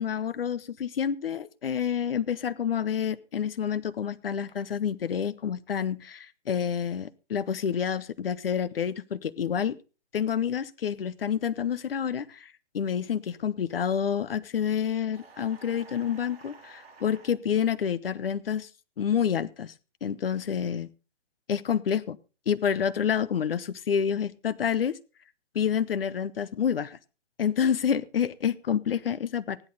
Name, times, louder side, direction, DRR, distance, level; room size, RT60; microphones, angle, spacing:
voice 1, 0.0-9.8 10.1-18.7 19.0-19.7 20.0-20.9 21.5-22.2 22.5-25.0 25.5-27.0 27.4-29.6, left 8 dB, 50° left, 16 dB, 0.8 m, -28 dB
sound 1, 15.1-17.4, right 4 dB, 55° right, 3.1 m, -51 dB
15.5 x 11.0 x 4.0 m, 0.33 s
hypercardioid pair, 170°, 36 cm